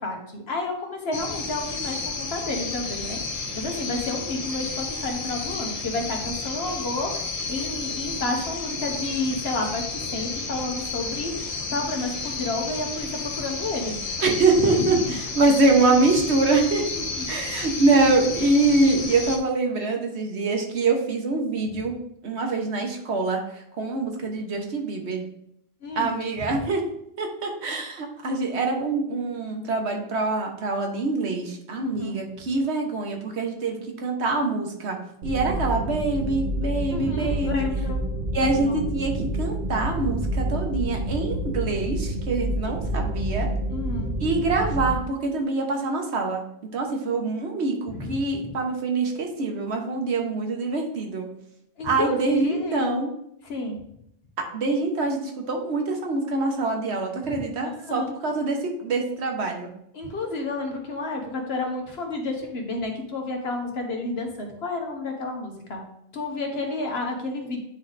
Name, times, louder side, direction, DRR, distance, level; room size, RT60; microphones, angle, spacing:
voice 1, 0.0-9.8 10.1-14.0 14.6-15.0 16.9-17.3 17.7-17.8 25.8-26.6 31.8-32.2 36.9-38.0 38.4-38.8 43.7-44.1 47.9-48.6 51.8-53.0 53.4-53.8 57.3-58.1 59.9-65.8 66.1-67.6, left 2 dB, 70° left, 2 dB, 1.4 m, -31 dB
sound 1, 1.1-19.4, left 4 dB, 35° left, 0.9 m, -32 dB
voice 2, 14.2-16.9 17.3-21.9 22.2-23.4 23.8-25.2 26.0-26.8 27.2-35.0 35.2-37.6 38.3-43.5 44.2-46.4 46.7-51.3 51.8-53.1 54.5-59.7, right 3 dB, 90° right, 3 dB, 1.3 m, -24 dB
sound 2, 35.2-44.9, right 1 dB, 55° right, 1.1 m, -28 dB
8.9 x 3.3 x 4.0 m, 0.76 s
omnidirectional pair, 1.1 m